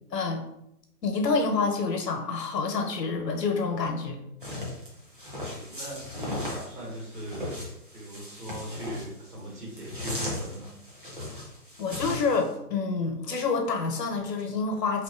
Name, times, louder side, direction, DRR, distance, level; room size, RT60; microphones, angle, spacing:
voice 1, 0.1-0.4 1.0-4.2 11.8-15.0, left 4 dB, 90° left, 4 dB, 0.8 m, -27 dB
sound 1, 4.4-12.5, left 1 dB, 35° right, 0.5 m, -37 dB
voice 2, 5.3-7.5 7.9-10.7, right 1 dB, 75° right, -3 dB, 1.4 m, -39 dB
2.8 x 2.4 x 2.3 m, 0.80 s
hypercardioid pair, 170°, 47 cm